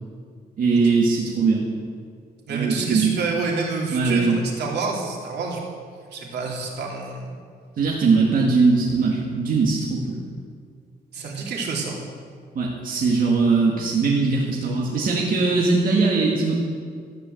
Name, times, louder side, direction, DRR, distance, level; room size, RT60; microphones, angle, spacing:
voice 1, 0.6-1.7 2.5-3.1 3.9-4.4 7.8-10.2 12.6-16.6, right 4 dB, 55° right, -3 dB, 2.1 m, -20 dB
voice 2, 2.5-5.6 6.1-7.3 11.1-12.0, right 4 dB, 80° right, -1 dB, 3.1 m, -28 dB
13.5 x 9.6 x 7.8 m, 2.1 s
cardioid pair, 140°, 17 cm